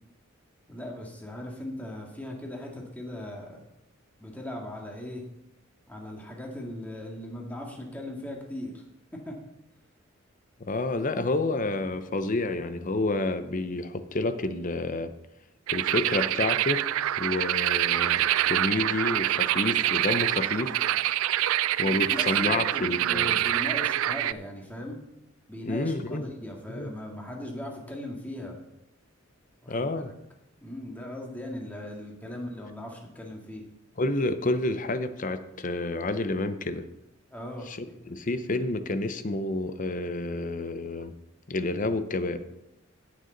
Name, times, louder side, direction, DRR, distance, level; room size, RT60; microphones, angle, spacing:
voice 1, 0.7-3.7 4.2-5.2 5.9-8.8 9.1-9.4 21.8-25.0 25.5-28.6 29.6-29.9 30.6-33.6 37.3-38.0, left 1 dB, 10° left, 0 dB, 1.9 m, -38 dB
voice 2, 10.6-15.1 15.7-16.8 17.2-20.7 21.8-23.3 25.6-26.2 26.7-26.9 29.7-30.1 34.0-36.9 37.7-37.8 38.1-41.1 41.5-42.4, left 2 dB, 40° left, 11 dB, 0.7 m, -29 dB
sound 1, 15.7-24.3, right 13 dB, 75° right, 0.3 m, -26 dB
16.5 x 6.5 x 4.0 m, 0.86 s
head